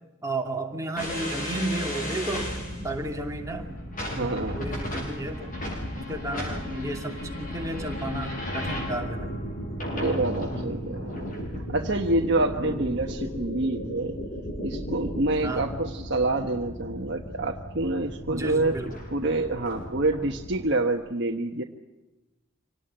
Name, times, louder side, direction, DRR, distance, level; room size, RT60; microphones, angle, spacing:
voice 1, 0.2-2.6 2.8-3.8 4.1-5.5 5.9-9.4 10.4-10.9 12.6-12.8 15.4-15.7 18.3-19.0, right 1 dB, 15° right, 1 dB, 2.7 m, -33 dB
sound 1, 1.0-20.7, equal, 40° left, 6.5 m, -35 dB
voice 2, 4.0-4.6 9.9-14.2 14.6-18.8 19.1-21.6, right 2 dB, 55° right, 2 dB, 1.3 m, -27 dB
26.0 x 18.5 x 8.9 m, 1.1 s
head